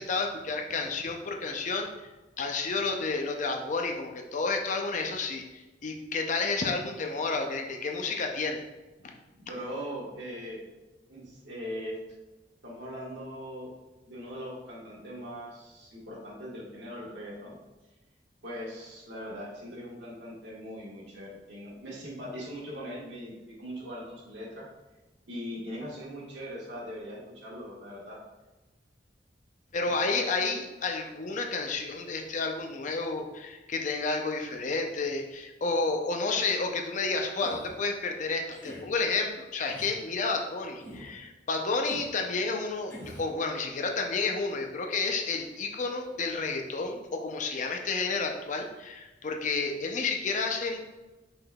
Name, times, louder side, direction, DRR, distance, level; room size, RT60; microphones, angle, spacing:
voice 1, 0.0-1.9 2.4-8.6 9.0-9.1 29.7-42.9 43.2-50.9, left 3 dB, 45° left, 3 dB, 0.5 m, -31 dB
voice 2, 9.3-10.6 11.1-12.0 12.6-13.7 14.0-17.6 18.4-23.3 23.6-24.7 25.3-28.2, equal, 90° right, -5 dB, 1.5 m, -40 dB
sound 1, 37.4-37.7 38.5-38.8 39.6-39.9 40.8-41.1 41.8-42.1 42.9-43.3, equal, 15° left, 1.3 m, -44 dB
5.3 x 3.7 x 2.3 m, 1.1 s
head